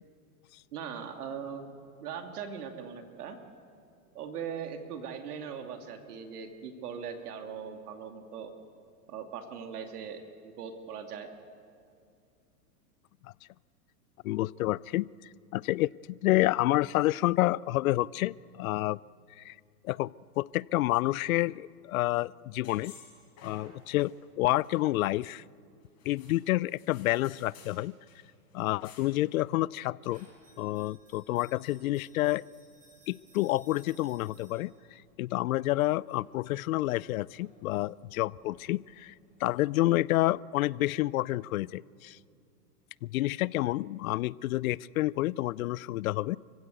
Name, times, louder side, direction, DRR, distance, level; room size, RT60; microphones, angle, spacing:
voice 1, 0.7-1.7 2.0-3.4 4.1-8.5 9.1-11.3, right 7 dB, 70° right, 5 dB, 2.6 m, -40 dB
voice 2, 14.2-15.1 15.5-19.0 19.4-19.5 19.8-20.1 20.4-22.9 23.4-25.4 26.1-27.9 28.5-30.3 30.6-32.4 33.1-39.1 39.4-42.2 43.0-46.4, left 17 dB, 60° left, 23 dB, 0.5 m, -29 dB
sound 1, 22.6-24.2 24.4-25.4 26.0-27.8 28.1-28.2 28.5-29.3, left 5 dB, 35° left, 6.5 m, -54 dB
sound 2, 30.0-40.3, equal, 15° right, 6.7 m, -62 dB
29.5 x 16.0 x 8.2 m, 2.4 s
hypercardioid pair, 120°, 47 cm